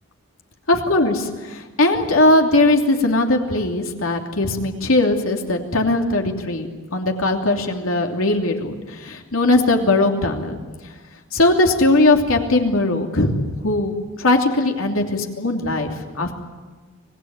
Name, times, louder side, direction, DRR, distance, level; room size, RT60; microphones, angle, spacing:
voice 1, 0.7-10.6 11.3-16.3, left 2 dB, 80° left, 3 dB, 2.9 m, -19 dB
25.0 x 19.0 x 9.7 m, 1.3 s
head